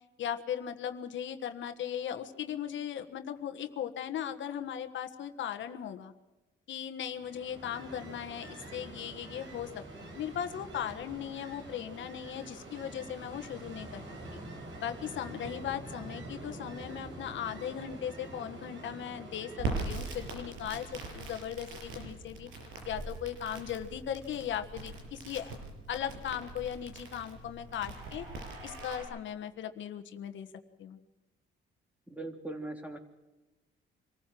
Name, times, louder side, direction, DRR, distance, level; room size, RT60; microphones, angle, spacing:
voice 1, 0.2-6.1 6.7-14.4 14.8-25.5 25.9-28.2 28.6-30.5 30.8-31.0, left 9 dB, 70° left, 8 dB, 1.5 m, -38 dB
Ocean, 7.1-21.2, right 2 dB, 70° right, 6.0 m, -46 dB
Crackle, 19.6-29.0, right 3 dB, 85° right, 7.0 m, -41 dB
voice 2, 32.1-33.0, right 2 dB, 5° right, 5 dB, 3.6 m, -40 dB
25.5 x 14.5 x 7.7 m, 1.1 s
cardioid pair, 90°, 20 cm